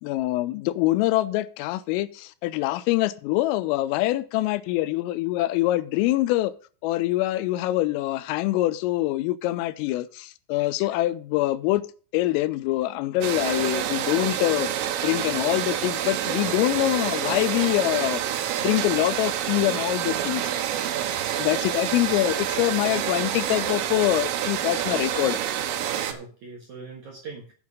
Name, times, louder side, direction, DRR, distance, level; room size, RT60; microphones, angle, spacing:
voice 1, 0.0-6.5 6.8-11.8 12.1-14.7 15.0-18.2 18.6-20.4 21.4-25.4, left 16 dB, 90° left, 3.3 m, -24 dB
sound 1, 13.2-26.1, right 10 dB, 85° right, 3.7 m, -28 dB
voice 2, 20.8-21.2 25.6-27.5, right 4 dB, 60° right, 2.0 m, -42 dB
8.4 x 8.1 x 6.4 m
omnidirectional pair, 5.7 m